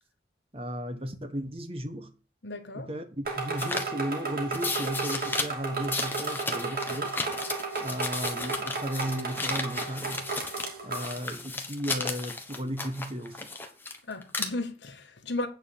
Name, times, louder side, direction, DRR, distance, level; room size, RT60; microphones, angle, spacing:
voice 1, 0.5-2.1 2.7-7.2 7.8-10.4 10.8-13.5, equal, 30° right, 1.2 m, -35 dB
voice 2, 2.4-2.9 14.1-15.5, left 2 dB, 70° left, 1.4 m, -35 dB
sound 1, 3.2-11.1, right 3 dB, 50° right, 2.6 m, -34 dB
sound 2, 3.6-3.9 4.5-5.4 5.8-10.7 10.9-14.0 14.2-14.5, left 3 dB, 10° left, 1.1 m, -34 dB
8.9 x 4.7 x 7.1 m
head